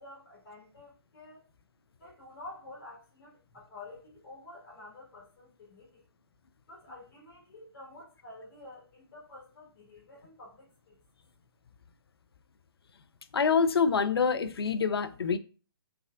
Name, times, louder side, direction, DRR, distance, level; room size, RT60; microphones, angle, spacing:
voice 1, 0.0-1.5 2.0-6.0 6.7-11.0, left 2 dB, 45° left, 1.4 m, -49 dB
voice 2, 13.3-15.4, left 5 dB, 70° left, 0.4 m, -26 dB
3.4 x 3.1 x 2.4 m
figure-of-eight pair, 130°, 13 cm